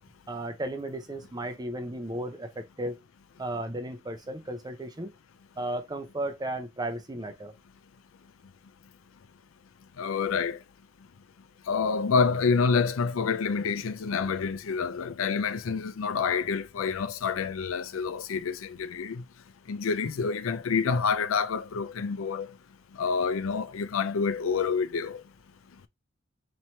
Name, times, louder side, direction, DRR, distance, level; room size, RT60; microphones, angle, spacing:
voice 1, 0.3-3.0 3.4-5.1 5.6-7.5, right 1 dB, 20° right, 0.6 m, -34 dB
voice 2, 10.0-10.6 11.7-19.2 19.7-22.5 23.0-25.2, left 5 dB, 85° left, 0.5 m, -28 dB
3.1 x 2.8 x 4.4 m
head